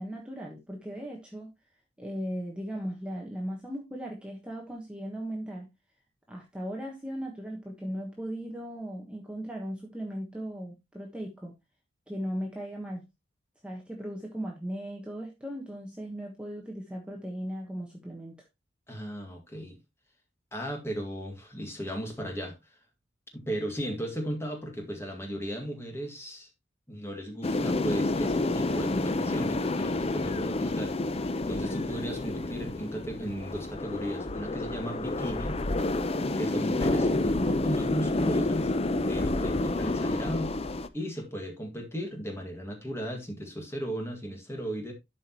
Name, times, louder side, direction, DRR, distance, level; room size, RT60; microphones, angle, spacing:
voice 1, 0.0-1.5 2.0-5.7 6.3-11.5 12.1-13.0 13.6-18.4, equal, 5° right, 1.3 m, -37 dB
voice 2, 18.9-19.8 20.5-22.6 23.3-26.5 26.9-35.6 36.4-38.7 39.1-40.5 40.9-44.9, equal, 15° left, 2.0 m, -36 dB
sound 1, 27.4-40.9, left 2 dB, 30° left, 0.6 m, -29 dB
12.0 x 5.2 x 3.0 m
head